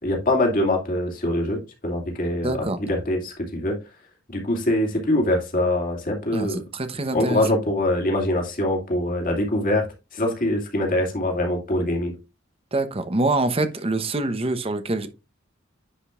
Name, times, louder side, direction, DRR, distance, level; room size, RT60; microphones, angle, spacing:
voice 1, 0.0-2.6 2.9-3.8 4.3-6.6 7.1-9.9 10.1-12.1, left 1 dB, 45° left, 2.6 m, -23 dB
voice 2, 2.4-2.8 6.3-7.4 12.7-15.1, right 2 dB, 30° right, 0.9 m, -25 dB
10.0 x 5.2 x 2.5 m
head